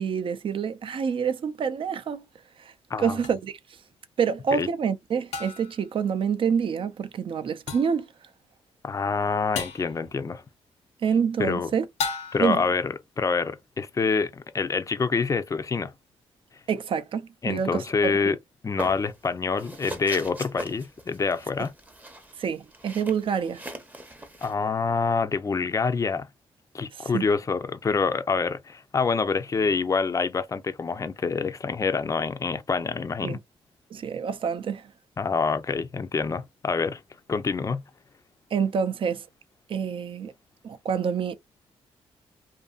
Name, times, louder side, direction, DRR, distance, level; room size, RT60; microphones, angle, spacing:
voice 1, 0.0-2.2 2.6-2.7 3.0-3.6 4.2-8.1 11.0-11.9 12.4-12.6 16.7-18.3 22.4-23.6 26.9-27.3 33.2-33.4 33.9-34.9 38.5-39.2 39.7-40.3 40.6-41.3, right 7 dB, 55° right, 0.5 m, -27 dB
sound 1, 3.2-3.4 5.3-5.8 7.7-8.0 9.6-9.9 12.0-12.6, left 5 dB, 85° left, 0.7 m, -33 dB
voice 2, 8.8-10.4 11.4-11.7 12.3-15.9 17.4-18.4 18.6-21.7 24.4-26.3 26.7-33.4 35.2-37.0 37.3-37.8, left 4 dB, 30° left, 0.5 m, -26 dB
sound 2, 18.8-19.3 19.6-24.5, right 1 dB, 15° right, 0.7 m, -40 dB
2.6 x 2.5 x 2.4 m
cardioid pair, 75°, 11 cm